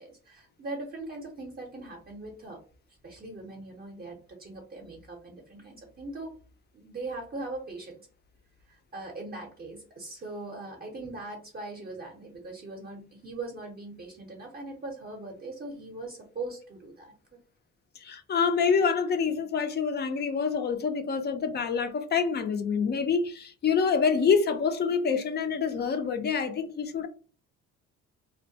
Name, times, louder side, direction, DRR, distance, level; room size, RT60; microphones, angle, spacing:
voice 1, 0.0-2.6 3.0-6.4 6.7-8.0 8.7-17.1, right 2 dB, 30° right, 0.6 m, -40 dB
voice 2, 18.0-27.1, left 6 dB, 35° left, 0.4 m, -26 dB
2.2 x 2.1 x 2.6 m
cardioid pair, 115°, 30 cm